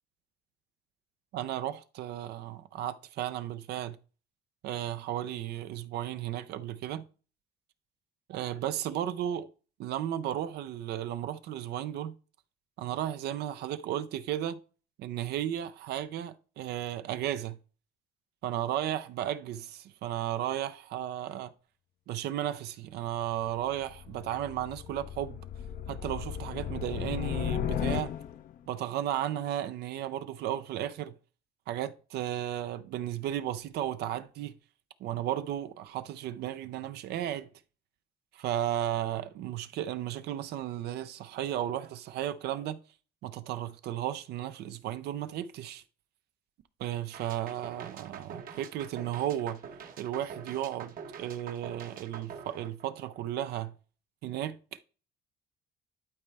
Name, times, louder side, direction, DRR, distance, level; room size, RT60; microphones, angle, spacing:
voice 1, 1.3-4.0 4.6-7.0 8.3-9.5 9.8-12.1 12.8-14.6 15.0-17.6 18.4-21.5 22.1-25.4 25.9-28.1 28.7-31.1 31.7-34.5 35.0-37.5 38.3-42.8 43.2-45.8 46.8-49.6 50.0-53.7 54.2-54.8, right 11 dB, 75° right, 0.6 m, -34 dB
sound 1, 23.3-28.6, left 9 dB, 55° left, 0.5 m, -35 dB
sound 2, 47.1-53.3, right 7 dB, 60° right, 1.1 m, -46 dB
12.0 x 4.2 x 3.3 m
cardioid pair, 110°, 17 cm